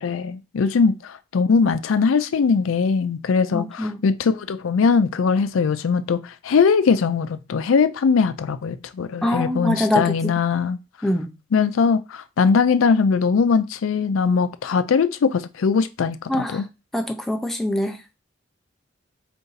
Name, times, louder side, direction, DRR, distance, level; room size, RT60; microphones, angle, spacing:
voice 1, 0.0-10.8 11.5-16.7, left 5 dB, 80° left, 0.4 m, -20 dB
voice 2, 3.5-4.0 9.2-10.3 11.0-11.3 16.3-16.6 16.9-18.0, left 1 dB, ahead, 0.4 m, -24 dB
3.9 x 2.6 x 3.9 m
head